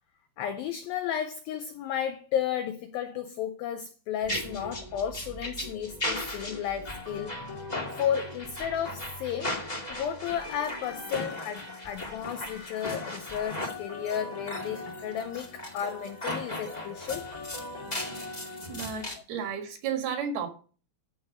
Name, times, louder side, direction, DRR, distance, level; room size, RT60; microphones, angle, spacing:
voice 1, 0.4-7.7 8.0-17.3, left 9 dB, 85° left, 2.0 m, -33 dB
sound 1, 4.2-19.2, left 1 dB, 50° left, 0.5 m, -37 dB
voice 2, 18.7-20.5, right 7 dB, 65° right, 3.4 m, -32 dB
14.0 x 4.9 x 5.5 m
omnidirectional pair, 5.0 m